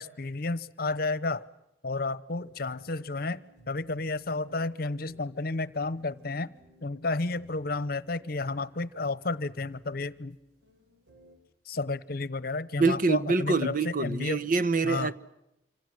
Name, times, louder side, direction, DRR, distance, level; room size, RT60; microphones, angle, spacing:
voice 1, 0.0-1.5 1.8-3.4 3.7-6.5 6.8-10.4 11.7-14.4 14.8-15.1, left 3 dB, 60° left, 0.9 m, -31 dB
sound 1, 2.3-11.4, left 1 dB, 80° right, 6.3 m, -61 dB
voice 2, 12.8-15.1, right 4 dB, 50° right, 1.0 m, -25 dB
27.0 x 25.5 x 7.8 m
head